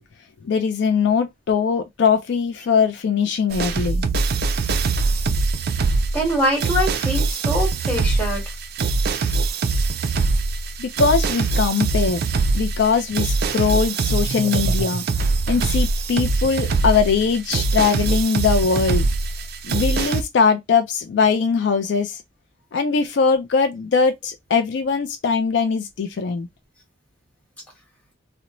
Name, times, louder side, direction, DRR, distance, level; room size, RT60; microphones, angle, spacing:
voice 1, 0.4-4.0 10.8-12.2 12.5-19.1 19.6-22.2 22.7-26.5, left 5 dB, 60° left, 0.4 m, -21 dB
sound 1, 3.5-20.2, right 3 dB, 50° right, 0.3 m, -22 dB
voice 2, 6.1-8.4, equal, 5° left, 1.3 m, -23 dB
2.6 x 2.0 x 2.8 m
head